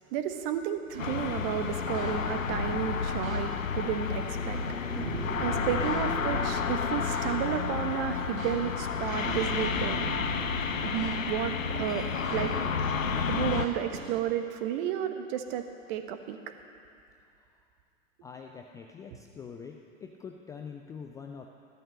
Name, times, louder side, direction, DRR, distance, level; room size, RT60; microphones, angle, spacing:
voice 1, 0.1-4.6 5.0-5.1 5.4-10.0 10.8-12.6 13.3-16.5, right 9 dB, 45° right, 7 dB, 1.3 m, -32 dB
sound 1, 0.9-14.2, right 2 dB, 80° right, 1.3 m, -39 dB
sound 2, 1.0-13.7, left 6 dB, 80° left, 0.8 m, -31 dB
voice 2, 18.2-21.5, left 6 dB, 10° left, 3 dB, 0.3 m, -44 dB
14.5 x 12.0 x 6.5 m, 2.5 s
figure-of-eight pair, 90°, 40 cm